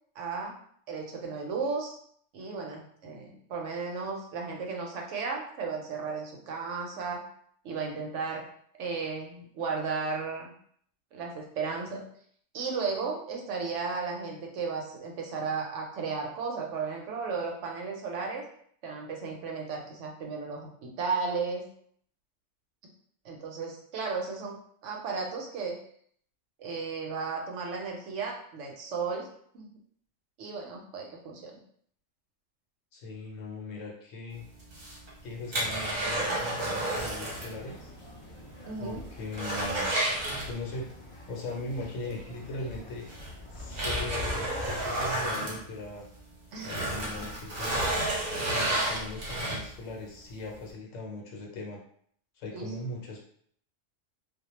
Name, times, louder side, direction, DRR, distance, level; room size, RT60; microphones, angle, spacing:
voice 1, 0.2-0.5 0.9-1.9 2.3-7.3 7.6-8.4 8.8-10.5 11.1-12.0 12.5-18.4 18.8-21.7 23.2-24.6 24.8-25.8 26.6-29.3 29.5-29.7 30.4-31.6 38.7-39.0 46.5-47.1 52.5-52.7, right 4 dB, 80° right, 0 dB, 0.9 m, -34 dB
voice 2, 32.9-34.4 35.2-37.9 38.8-39.9 40.5-43.1 43.5-46.1 46.6-47.9 48.5-51.8 52.4-53.3, left 2 dB, 85° left, 0 dB, 1.0 m, -39 dB
sound 1, 34.6-37.6 37.9-38.0 38.4-38.5 38.9-40.9 42.3-42.4 43.1-46.2 46.5-49.9 50.4-50.5, right 1 dB, 40° right, 0.8 m, -31 dB
sound 2, 37.0-45.1, left 2 dB, 50° left, 0.3 m, -43 dB
2.3 x 2.1 x 2.9 m, 0.63 s
omnidirectional pair, 1.3 m